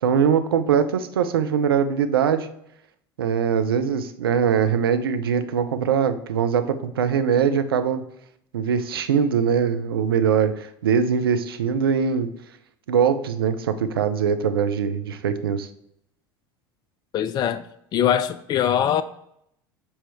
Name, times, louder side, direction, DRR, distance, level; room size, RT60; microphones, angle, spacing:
voice 1, 0.0-2.5 3.2-8.0 8.5-12.3 12.9-15.7, right 7 dB, 75° right, 0.5 m, -22 dB
voice 2, 17.1-17.7 17.9-19.0, left 9 dB, 35° left, 0.3 m, -22 dB
7.0 x 4.2 x 3.4 m
figure-of-eight pair, 70°, 12 cm